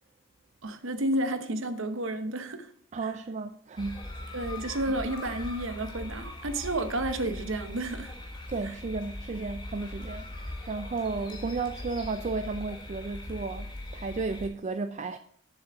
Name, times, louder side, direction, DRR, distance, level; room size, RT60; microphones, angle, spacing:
voice 1, 0.6-2.7 4.3-8.1 8.6-8.7, right 1 dB, 60° right, 0.9 m, -31 dB
voice 2, 2.9-4.1 8.5-15.2, right 4 dB, 35° right, 0.3 m, -33 dB
sound 1, 3.8-14.5, left 1 dB, 20° left, 1.4 m, -40 dB
7.1 x 6.9 x 3.8 m
head